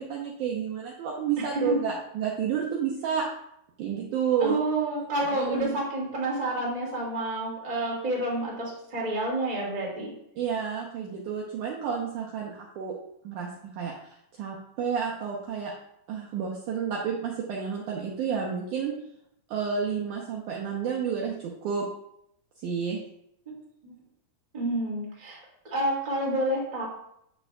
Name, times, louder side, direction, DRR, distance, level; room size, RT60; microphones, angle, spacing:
voice 1, 0.0-3.3 3.8-4.6 5.3-5.7 10.4-12.9 13.2-13.5 13.8-15.7 16.1-18.9 19.5-21.3 21.6-21.8 22.6-23.0, right 7 dB, 75° right, -2 dB, 1.9 m, -30 dB
voice 2, 4.4-10.1 23.8-23.9 24.5-25.4 25.6-26.8, right 1 dB, 15° right, -4 dB, 1.5 m, -29 dB
9.0 x 6.7 x 2.3 m, 0.74 s
omnidirectional pair, 4.5 m